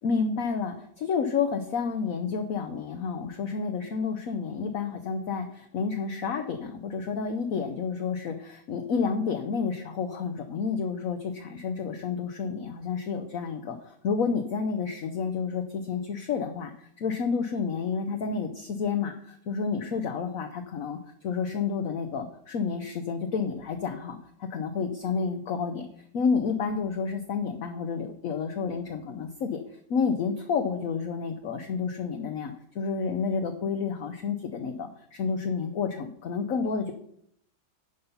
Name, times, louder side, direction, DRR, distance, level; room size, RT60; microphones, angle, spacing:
voice 1, 0.0-25.9 26.1-29.6 29.9-36.9, left 5 dB, 60° left, 6 dB, 1.0 m, -30 dB
10.5 x 5.6 x 5.5 m, 0.68 s
omnidirectional pair, 2.0 m